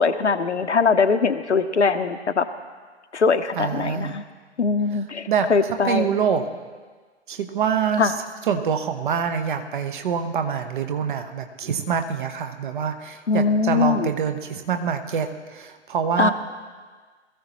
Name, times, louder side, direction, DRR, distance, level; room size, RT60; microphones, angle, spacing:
voice 1, 0.0-2.5 3.1-4.2 4.6-6.2 8.0-8.1 13.3-14.1 16.2-16.3, left 4 dB, 75° left, 8 dB, 1.0 m, -21 dB
voice 2, 3.6-4.2 5.3-6.5 7.3-8.1 8.5-16.3, right 7 dB, 45° right, 7 dB, 1.2 m, -25 dB
20.5 x 14.5 x 3.1 m, 1.5 s
figure-of-eight pair, 125°, 35 cm